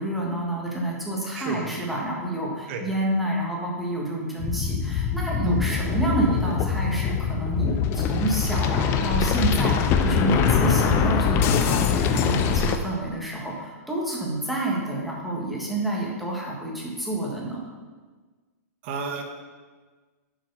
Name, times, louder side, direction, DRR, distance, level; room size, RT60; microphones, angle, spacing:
voice 1, 0.0-17.6, right 2 dB, ahead, -4 dB, 1.5 m, -28 dB
sound 1, 4.4-12.8, left 6 dB, 25° left, 0.5 m, -23 dB
voice 2, 5.4-5.8 18.8-19.2, right 3 dB, 40° right, 3 dB, 1.1 m, -29 dB
7.6 x 4.7 x 5.5 m, 1.4 s
hypercardioid pair, 145°, 9 cm